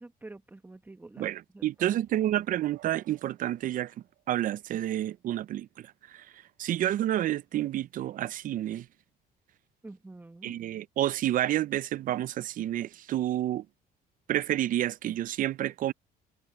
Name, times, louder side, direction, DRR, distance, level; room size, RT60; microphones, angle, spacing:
voice 1, 0.0-1.3 1.5-2.0 9.8-10.5, right 2 dB, 10° right, 1.2 m, -47 dB
voice 2, 1.2-3.9 4.3-8.9 10.4-13.7 14.3-15.9, right 13 dB, 55° right, 0.5 m, -30 dB
sound 1, 1.7-5.3, right 17 dB, 85° right, 3.5 m, -60 dB
cardioid pair, 110°, 17 cm